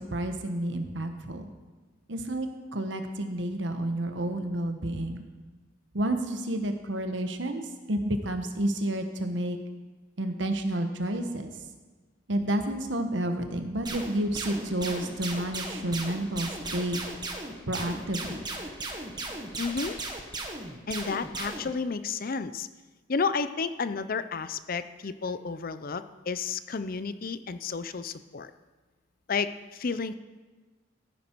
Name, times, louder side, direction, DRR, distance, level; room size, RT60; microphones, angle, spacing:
voice 1, 0.0-1.5 2.1-5.2 5.9-9.6 10.2-11.5 12.3-17.0 17.7-18.4, right 1 dB, 70° right, 6 dB, 1.2 m, -30 dB
sound 1, 13.8-21.7, right 2 dB, 25° right, 1.4 m, -36 dB
voice 2, 19.6-20.0 20.9-22.7 23.1-28.5 29.3-30.2, left 5 dB, 50° left, 12 dB, 0.6 m, -31 dB
15.5 x 9.4 x 4.6 m, 1.3 s
head